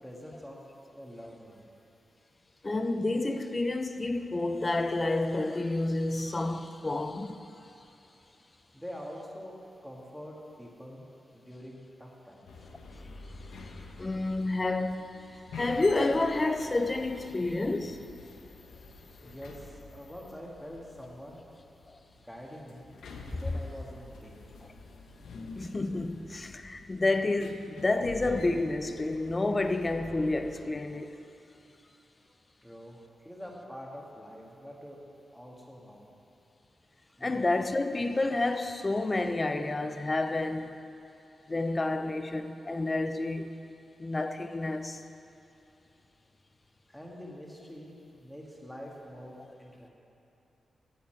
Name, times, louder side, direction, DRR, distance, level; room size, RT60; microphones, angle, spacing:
voice 1, 0.0-0.6 0.9-1.7 8.7-9.6 9.8-12.5 19.2-21.4 22.2-22.9 23.4-24.7 32.6-35.0 35.3-36.1 37.2-37.5 46.9-47.9 48.2-49.9, equal, 5° left, 1.5 m, -45 dB
voice 2, 2.6-7.5 13.0-13.2 14.0-18.0 21.9-22.0 25.6-31.2 37.2-40.8 41.5-43.6 44.0-45.0, left 2 dB, 25° left, 0.5 m, -30 dB
sound 1, 12.5-30.7, left 3 dB, 90° left, 0.9 m, -48 dB
12.0 x 8.4 x 4.4 m
wide cardioid pair, 110°, 0 cm